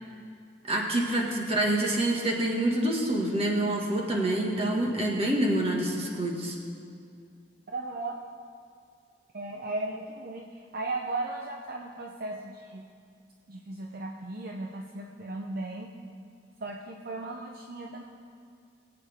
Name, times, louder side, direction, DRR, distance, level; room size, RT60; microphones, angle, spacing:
voice 1, 0.7-6.6, right 1 dB, 35° right, -1 dB, 1.9 m, -27 dB
voice 2, 7.7-8.2 9.3-12.9 13.5-15.9 16.6-18.0, right 2 dB, 55° right, 1 dB, 0.7 m, -36 dB
22.5 x 8.7 x 3.6 m, 2.3 s
head